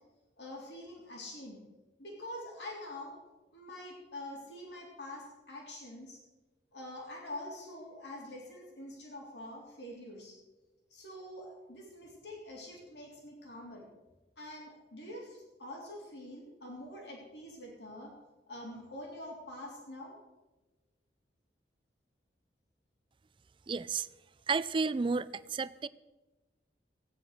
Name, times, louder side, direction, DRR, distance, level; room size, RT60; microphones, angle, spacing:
voice 1, 0.4-1.6 2.0-3.2 3.5-6.2 6.7-10.4 10.9-13.9 14.4-18.1 18.5-20.2, left 1 dB, 75° left, 3.4 m, -45 dB
voice 2, 23.7-24.1 24.5-25.9, right 4 dB, 30° right, 0.4 m, -32 dB
15.5 x 9.5 x 6.5 m
head